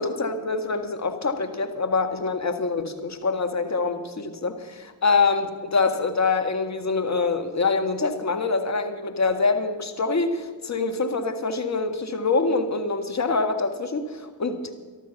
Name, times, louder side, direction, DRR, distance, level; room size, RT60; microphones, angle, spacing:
voice 1, 0.0-14.7, left 4 dB, 40° left, 8 dB, 1.9 m, -25 dB
14.0 x 12.5 x 5.9 m, 1.4 s
hypercardioid pair, 40°, 43 cm